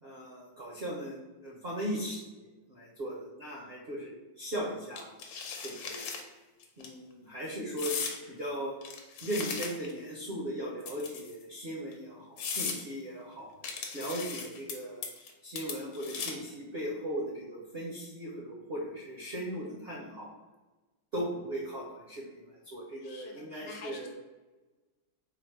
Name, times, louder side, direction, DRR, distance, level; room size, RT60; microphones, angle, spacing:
voice 1, 0.0-5.2 5.6-6.1 6.8-8.0 8.3-8.7 9.2-13.5 13.9-15.1 15.4-20.3 21.1-24.1, equal, 60° right, -5 dB, 0.6 m, -38 dB
sound 1, 5.0-6.2 6.6-6.9 7.8-8.2 8.8-10.0 10.8-11.4 11.9-12.0 12.4-12.8 13.6-14.7 15.0-15.3 15.6-16.5, left 5 dB, 85° left, 1.3 m, -37 dB
voice 2, 19.5-20.2 23.0-24.1, left 3 dB, 60° left, 1 dB, 1.1 m, -49 dB
3.9 x 2.0 x 4.4 m, 1.2 s
omnidirectional pair, 1.9 m